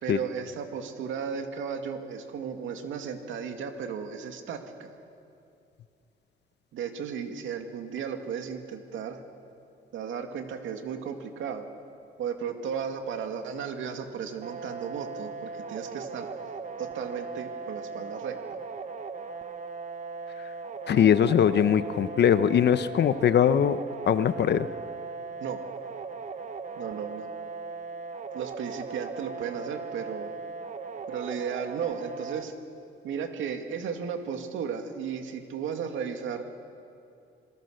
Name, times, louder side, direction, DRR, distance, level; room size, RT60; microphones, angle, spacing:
voice 1, 0.0-4.9 6.7-9.2 9.9-11.7 12.2-16.3 16.8-18.4 25.4-25.6 26.8-27.3 28.3-30.3 31.1-32.5 33.0-36.4, right 7 dB, 80° right, 5 dB, 2.4 m, -35 dB
sound 1, 14.4-32.4, right 4 dB, 40° right, 1.4 m, -38 dB
voice 2, 20.9-23.8 24.1-24.7, left 9 dB, 60° left, 13 dB, 1.0 m, -21 dB
27.0 x 22.0 x 6.6 m, 2.5 s
cardioid pair, 90°, 20 cm